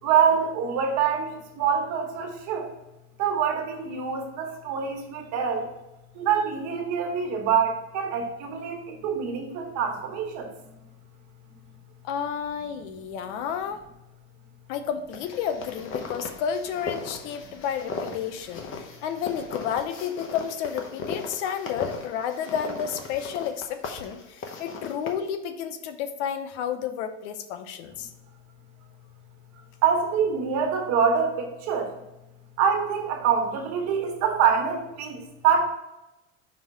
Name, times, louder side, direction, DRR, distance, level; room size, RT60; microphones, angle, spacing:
voice 1, 0.0-2.7 3.2-5.7 6.1-10.5 29.8-32.0 32.6-35.7, right 7 dB, 50° right, 2 dB, 1.4 m, -25 dB
voice 2, 12.0-13.8 14.7-28.1, left 8 dB, 75° left, 9 dB, 0.8 m, -31 dB
sound 1, 15.1-25.1, left 4 dB, 35° left, 1.0 m, -37 dB
5.5 x 3.6 x 5.6 m, 0.95 s
supercardioid pair, 135°, 36 cm